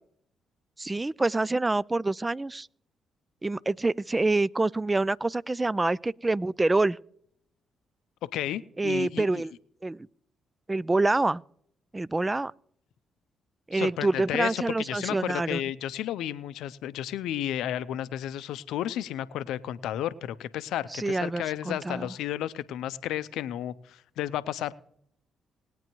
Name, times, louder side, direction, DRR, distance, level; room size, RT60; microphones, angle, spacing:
voice 1, 0.8-2.7 3.4-7.0 8.8-9.5 9.8-10.1 10.7-11.4 11.9-12.5 13.7-15.6 20.9-22.1, right 2 dB, 20° right, 0.4 m, -26 dB
voice 2, 8.3-9.3 13.7-24.7, left 12 dB, 75° left, 0.5 m, -32 dB
20.5 x 9.1 x 3.1 m
hypercardioid pair, 45°, 0 cm